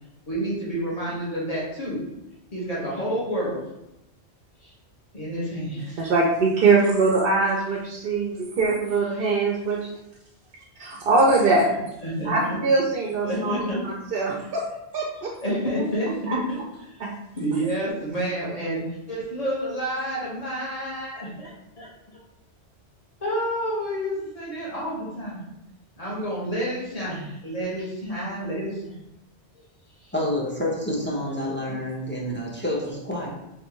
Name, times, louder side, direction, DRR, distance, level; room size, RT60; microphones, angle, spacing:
voice 1, 0.3-2.0 2.5-3.6 4.6-4.7 5.1-6.0 12.0-12.6 13.3-13.8 15.4-16.6 17.3-21.5 21.8-22.2 23.2-25.4 26.0-28.9, equal, 35° left, -7 dB, 1.4 m, -29 dB
voice 2, 6.0-9.9 10.8-11.7 12.2-14.6 14.9-15.3 16.3-16.4 17.0-17.1, right 3 dB, 60° right, -2 dB, 0.7 m, -22 dB
voice 3, 30.1-33.3, left 1 dB, 10° left, -4 dB, 0.6 m, -28 dB
3.6 x 3.4 x 3.0 m, 0.88 s
omnidirectional pair, 1.2 m